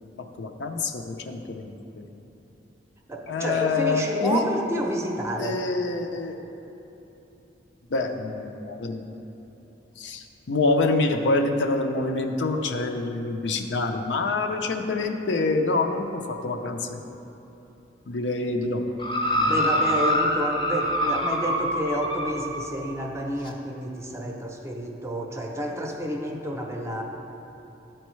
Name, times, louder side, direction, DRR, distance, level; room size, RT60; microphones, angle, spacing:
voice 1, 0.4-2.0 3.3-4.4 5.4-6.4 7.9-9.0 10.0-17.0 18.1-18.8 19.3-19.7, left 3 dB, 70° left, 4 dB, 0.5 m, -26 dB
voice 2, 3.1-5.6 19.5-27.0, equal, 15° right, 1 dB, 0.6 m, -29 dB
sound 1, 19.0-22.7 23.5-23.6, equal, 25° left, 0.6 m, -25 dB
12.0 x 4.4 x 3.1 m, 3.0 s
head